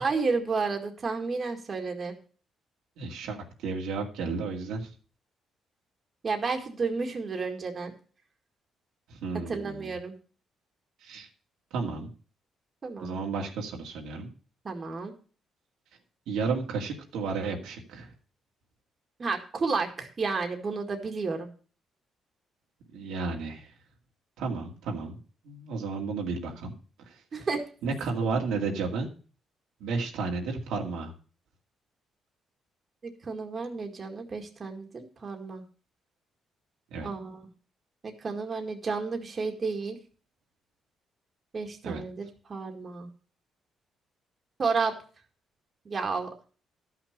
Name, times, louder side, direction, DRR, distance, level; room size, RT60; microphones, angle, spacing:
voice 1, 0.0-2.1 6.2-7.9 9.5-10.1 12.8-13.2 14.6-15.1 19.2-21.5 27.3-27.6 33.2-35.6 37.0-37.4 38.0-40.0 41.5-43.1 44.6-44.9 45.9-46.3, right 4 dB, 40° right, 3 dB, 1.9 m, -31 dB
voice 2, 3.0-4.9 9.1-9.9 11.0-11.3 11.7-12.1 13.0-14.3 16.3-18.1 22.9-23.7 24.4-25.2 25.4-26.7 27.0-27.2 27.8-29.1 29.8-31.1 36.9-37.1 41.8-42.0, right 4 dB, 90° right, 0 dB, 2.1 m, -32 dB
12.5 x 5.9 x 6.6 m, 0.40 s
cardioid pair, 90°, 0 cm